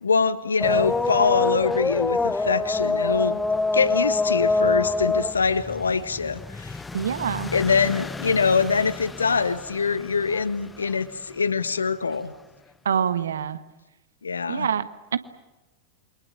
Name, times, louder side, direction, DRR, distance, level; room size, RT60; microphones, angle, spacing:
voice 1, 0.0-3.4 3.7-6.8 7.5-12.3 14.2-14.7, left 5 dB, 75° left, 13 dB, 1.5 m, -24 dB
sound 1, 0.6-10.4 10.9-11.0 12.1-12.2, left 3 dB, 10° left, 1.1 m, -26 dB
voice 2, 6.9-7.5 12.8-13.6 14.5-15.2, right 8 dB, 65° right, 12 dB, 1.5 m, -26 dB
28.5 x 24.5 x 7.5 m, 1.0 s
figure-of-eight pair, 90°, 0 cm